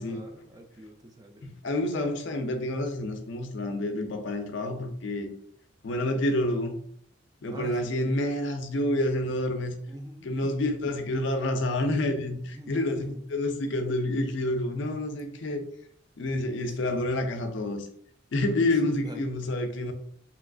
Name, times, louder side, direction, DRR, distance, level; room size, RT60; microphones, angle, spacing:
voice 1, 0.0-1.6 5.9-6.1 7.5-8.1 9.9-10.6 12.5-13.2 16.6-17.0 18.6-19.2, equal, 20° right, 0.3 m, -44 dB
voice 2, 1.4-5.3 5.8-6.7 7.4-9.7 10.2-15.6 16.2-17.9 18.3-19.9, left 1 dB, 60° left, 0.5 m, -28 dB
3.0 x 2.9 x 2.5 m
head